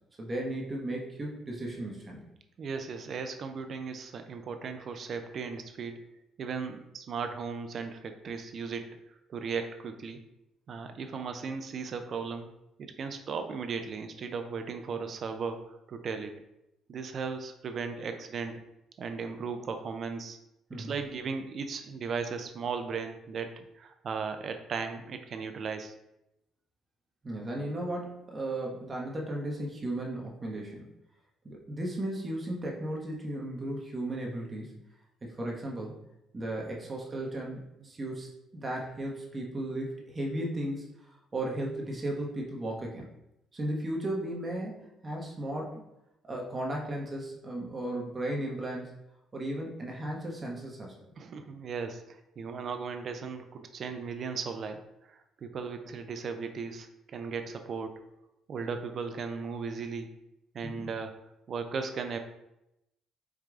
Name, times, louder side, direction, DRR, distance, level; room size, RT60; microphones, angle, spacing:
voice 1, 0.2-2.3 20.7-20.9 27.2-30.9 31.4-34.8 35.2-36.0 36.3-40.9 41.3-43.1 43.5-45.8 46.3-48.9 49.3-51.0 60.6-60.9, right 1 dB, 30° right, -1 dB, 0.8 m, -35 dB
voice 2, 2.6-5.9 6.4-8.8 9.3-10.2 10.7-12.5 12.8-16.3 16.9-18.5 19.0-20.4 20.7-25.9 37.8-37.9 51.2-54.8 55.1-56.9 57.1-58.0 58.5-60.1 60.5-61.1 61.5-62.2, right 5 dB, 55° right, 7 dB, 0.5 m, -36 dB
4.8 x 2.2 x 3.6 m, 0.86 s
cardioid pair, 85°, 0 cm